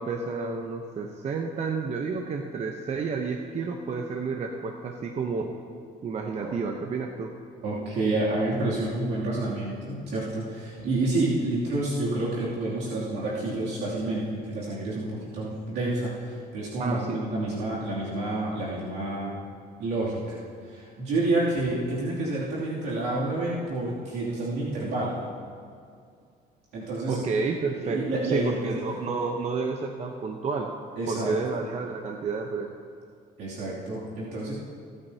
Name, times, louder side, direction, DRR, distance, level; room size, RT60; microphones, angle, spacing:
voice 1, 0.0-5.5 6.0-7.3 16.8-17.2 27.1-30.7 31.1-32.7, right 4 dB, 40° right, 3 dB, 0.9 m, -30 dB
voice 2, 7.6-19.3 19.8-25.2 26.7-27.2 27.8-28.8 31.0-31.3 33.4-34.5, right 2 dB, 80° right, -7 dB, 2.7 m, -29 dB
25.5 x 8.9 x 2.8 m, 2.2 s
cardioid pair, 110°, 17 cm